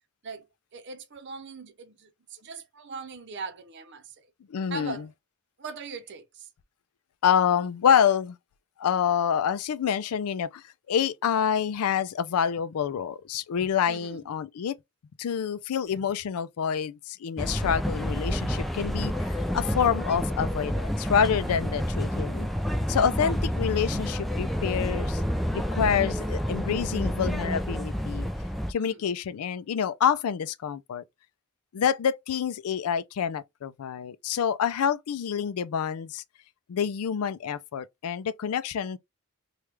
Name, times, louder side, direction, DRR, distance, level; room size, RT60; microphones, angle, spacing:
voice 1, 0.7-2.1 2.4-4.0 4.7-5.1 5.6-6.5 13.9-14.2 28.8-29.0, right 4 dB, 55° right, 0.7 m, -40 dB
voice 2, 4.5-5.1 7.2-8.4 8.8-14.7 15.2-22.5 22.9-25.2 25.5-28.3 28.7-31.0 31.7-36.2 36.7-39.0, left 8 dB, 85° left, 0.4 m, -27 dB
sound 1, 17.4-28.7, equal, ahead, 0.3 m, -29 dB
3.2 x 2.4 x 3.0 m
head